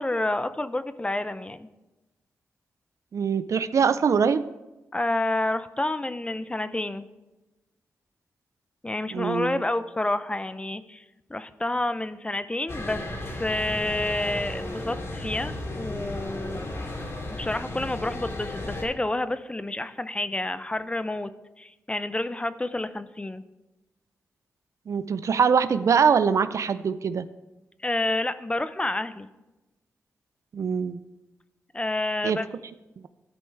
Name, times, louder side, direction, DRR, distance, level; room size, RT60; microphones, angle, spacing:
voice 1, 0.0-1.7 4.9-7.1 8.8-11.0 11.3-17.0 17.4-21.3 21.6-23.4 27.8-29.3 31.7-32.5, left 2 dB, 20° left, 12 dB, 0.5 m, -29 dB
voice 2, 3.1-4.4 9.1-9.6 24.9-27.3 30.5-31.0 32.2-32.4, right 6 dB, 65° right, 14 dB, 0.4 m, -23 dB
sound 1, 12.7-18.8, left 1 dB, 55° left, 2.4 m, -34 dB
13.5 x 5.3 x 4.5 m, 1.1 s
cardioid pair, 60°, 6 cm